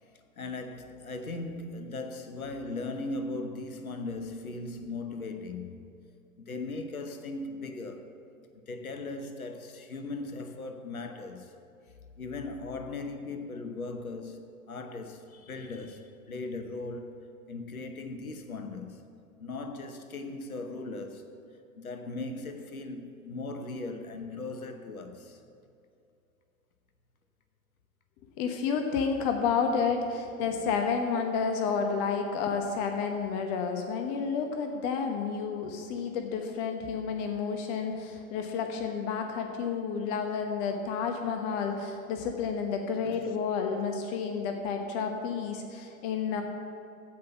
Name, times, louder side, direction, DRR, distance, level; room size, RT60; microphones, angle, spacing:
voice 1, 0.4-5.8 6.4-8.2 8.7-11.5 12.2-19.0 19.4-21.3 21.7-25.4 43.0-43.4, left 3 dB, 80° left, 1.0 m, -38 dB
voice 2, 28.4-46.4, left 6 dB, 40° left, 1.1 m, -30 dB
15.5 x 5.8 x 5.9 m
figure-of-eight pair, 95°, 42 cm